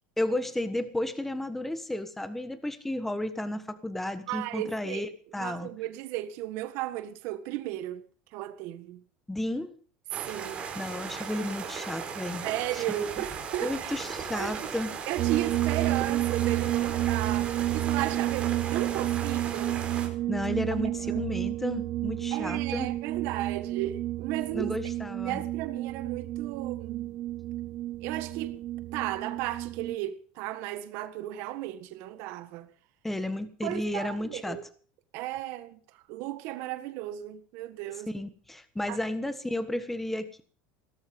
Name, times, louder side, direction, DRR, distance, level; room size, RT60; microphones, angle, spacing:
voice 1, 0.2-5.7 9.3-9.7 10.7-12.5 12.7-13.1 13.6-14.9 20.3-22.9 24.5-25.4 33.0-34.6 38.1-40.4, left 1 dB, 5° left, 1.4 m, -33 dB
voice 2, 4.3-5.1 5.4-8.0 8.3-9.0 10.3-10.6 12.4-13.9 14.3-14.7 15.1-19.8 21.1-21.2 22.3-24.7 25.2-27.1 28.0-28.6 28.9-32.7 33.6-34.6 35.1-35.8 36.1-38.1 38.9-39.0, right 14 dB, 60° right, 1.5 m, -35 dB
sound 1, 10.1-20.1, right 6 dB, 25° right, 4.7 m, -37 dB
sound 2, 15.2-30.0, right 14 dB, 40° right, 0.9 m, -31 dB
18.0 x 13.0 x 5.3 m
supercardioid pair, 135°, 5 cm